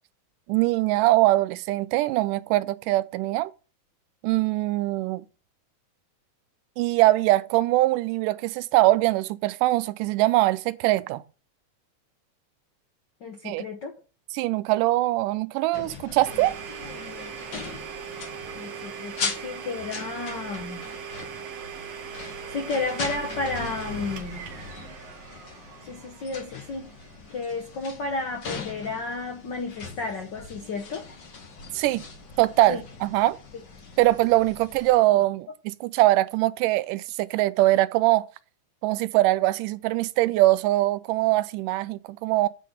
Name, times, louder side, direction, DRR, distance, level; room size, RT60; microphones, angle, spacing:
voice 1, 0.5-3.5 4.2-5.2 6.8-11.2 13.4-13.6 14.3-16.6 31.7-32.0 32.4-33.4 34.0-38.3 38.8-42.5, right 17 dB, 85° right, 2.1 m, -22 dB
voice 2, 13.2-13.9 18.5-20.8 22.5-24.4 25.8-26.9 27.3-31.1 32.7-32.8, left 3 dB, 80° left, 0.9 m, -32 dB
sound 1, 15.7-35.0, left 4 dB, 50° left, 1.4 m, -40 dB
Domestic sounds home sounds, 16.3-27.9, right 7 dB, 60° right, 2.1 m, -40 dB
8.4 x 3.6 x 6.5 m
omnidirectional pair, 3.7 m